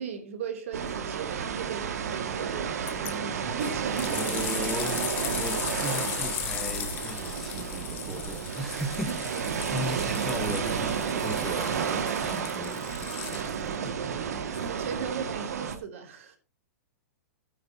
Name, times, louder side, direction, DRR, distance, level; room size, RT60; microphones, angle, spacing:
voice 1, 0.0-4.3 9.1-10.0 13.8-16.4, right 6 dB, 55° right, 3.0 m, -38 dB
sound 1, 0.7-15.8, right 7 dB, 80° right, 2.1 m, -31 dB
sound 2, 2.9-3.1 3.6-13.8 14.5-14.6, left 11 dB, 20° left, 1.1 m, -37 dB
voice 2, 3.4-9.1 9.7-13.5, left 1 dB, ahead, 1.1 m, -37 dB
15.0 x 9.6 x 2.9 m
hypercardioid pair, 170°, 8 cm